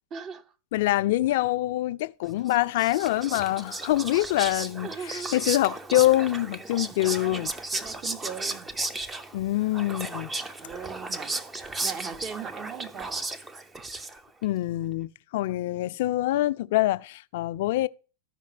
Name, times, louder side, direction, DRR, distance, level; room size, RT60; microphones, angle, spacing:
voice 1, 0.1-0.4 4.8-5.4 6.0-6.1 7.0-7.4 7.7-8.7 10.6-11.3 11.8-13.1, right 7 dB, 35° right, 0.9 m, -39 dB
voice 2, 0.7-7.5 9.3-10.3 14.4-17.9, left 16 dB, 65° left, 0.4 m, -25 dB
Whispering, 2.5-14.4, right 2 dB, 15° right, 0.6 m, -35 dB
13.5 x 5.0 x 3.3 m
hypercardioid pair, 110°, 0 cm